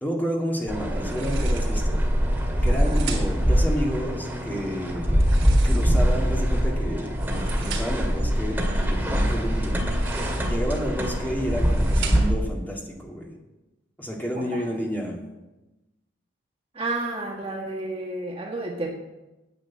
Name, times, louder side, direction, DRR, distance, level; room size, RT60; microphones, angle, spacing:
voice 1, 0.0-2.0 2.6-5.1 5.6-9.8 10.5-13.3 14.0-15.2, equal, 10° left, -2 dB, 2.2 m, -30 dB
sound 1, 0.7-12.3, equal, 10° right, 2.1 m, -23 dB
sound 2, 1.0-1.9 2.5-3.5 5.1-6.2 7.0-8.1 9.8-10.7 11.3-12.5, right 6 dB, 80° right, 3.1 m, -39 dB
voice 2, 2.7-3.0 14.3-14.6 16.7-18.9, right 2 dB, 30° right, 0 dB, 1.5 m, -31 dB
10.0 x 8.5 x 8.6 m, 1.0 s
head